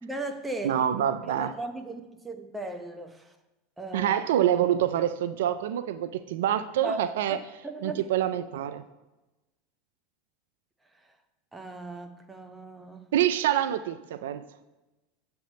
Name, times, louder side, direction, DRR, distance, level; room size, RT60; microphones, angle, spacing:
voice 1, 0.0-0.9 1.2-3.3 3.8-4.2 6.8-7.0 7.3-8.0 11.5-13.1, right 2 dB, 10° right, 6 dB, 0.8 m, -37 dB
voice 2, 0.6-1.5 3.9-7.4 7.8-8.8 13.1-14.4, right 10 dB, 75° right, 12 dB, 0.3 m, -26 dB
7.6 x 3.4 x 6.4 m, 1.1 s
hypercardioid pair, 100°, 0 cm